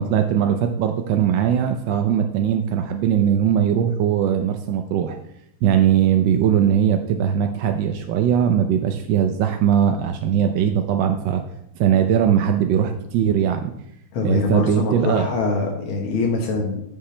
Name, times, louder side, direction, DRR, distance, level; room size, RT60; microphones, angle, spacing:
voice 1, 0.0-5.2 5.6-11.4 11.7-13.7 14.2-15.3, right 9 dB, 70° right, 5 dB, 1.2 m, -20 dB
voice 2, 14.1-16.8, left 3 dB, 75° left, -1 dB, 2.1 m, -23 dB
14.5 x 5.8 x 3.2 m, 0.76 s
omnidirectional pair, 2.3 m